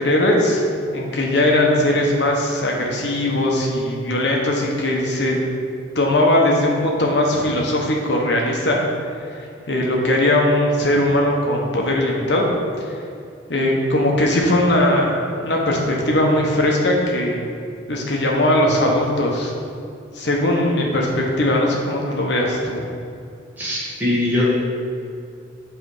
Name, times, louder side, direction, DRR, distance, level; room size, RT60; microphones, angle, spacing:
voice 1, 0.0-5.4 5.9-8.8 9.7-12.5 13.5-17.5 17.9-19.5 20.1-22.8, left 1 dB, 65° left, -1 dB, 1.1 m, -19 dB
voice 2, 23.6-24.5, left 1 dB, 10° right, -8 dB, 1.6 m, -21 dB
7.7 x 3.4 x 4.8 m, 2.4 s
head